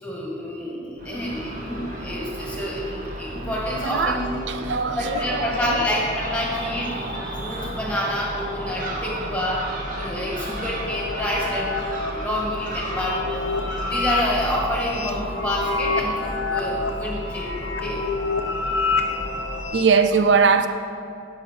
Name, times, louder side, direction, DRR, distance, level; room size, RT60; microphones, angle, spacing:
voice 1, 0.0-4.2 5.0-9.7 10.0-18.1, left 1 dB, 5° left, -3 dB, 2.0 m, -28 dB
Crow / Gull seagull, 1.0-19.6, equal, 45° right, 1.4 m, -33 dB
voice 2, 3.8-4.2 4.5-5.9 19.7-20.7, right 5 dB, 75° right, 8 dB, 0.5 m, -21 dB
sound 1, 9.5-19.8, left 3 dB, 85° left, 0.9 m, -29 dB
17.0 x 6.0 x 5.3 m, 2.5 s
head